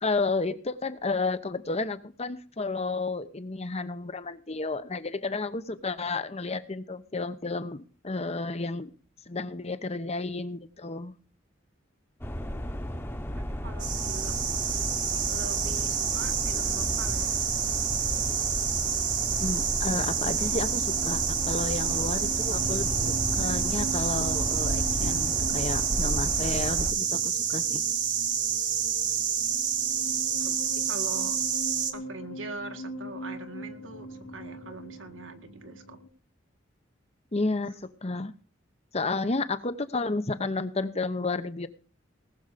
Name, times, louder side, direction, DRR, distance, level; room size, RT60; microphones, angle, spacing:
voice 1, 0.0-8.9 9.3-11.1 19.4-27.8 37.3-38.3 38.9-41.7, left 3 dB, 35° left, 12 dB, 0.9 m, -31 dB
sound 1, 12.2-26.9, equal, 10° left, 1.2 m, -34 dB
voice 2, 13.3-14.5 15.3-17.4 29.8-30.0 30.3-31.4 31.9-36.0, right 3 dB, 75° right, 7 dB, 1.9 m, -43 dB
sound 2, 13.8-31.9, right 8 dB, 40° right, 1.5 m, -28 dB
sound 3, 17.2-36.1, equal, 85° left, 2.8 m, -41 dB
19.5 x 7.1 x 5.1 m, 0.39 s
head